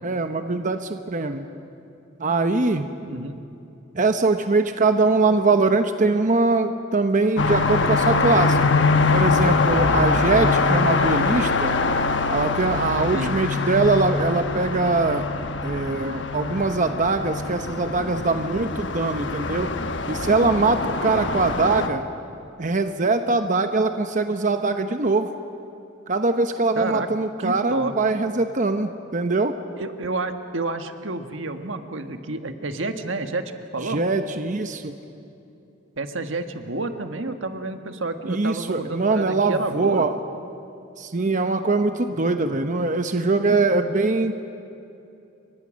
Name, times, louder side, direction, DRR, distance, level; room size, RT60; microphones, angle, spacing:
voice 1, 0.0-1.5 2.2-2.9 4.0-8.6 9.1-11.7 12.3-15.3 15.6-19.7 20.1-22.0 22.6-25.3 26.1-29.5 33.9-34.9 38.3-40.1 41.0-44.3, right 3 dB, 40° right, 7 dB, 0.9 m, -22 dB
voice 2, 3.0-3.4 13.1-13.3 26.7-27.1 27.4-27.9 29.8-34.0 36.0-40.1, right 3 dB, 80° right, 7 dB, 1.5 m, -29 dB
sound 1, 7.4-21.9, left 3 dB, 65° left, 1.2 m, -23 dB
29.0 x 23.5 x 6.4 m, 2.7 s
head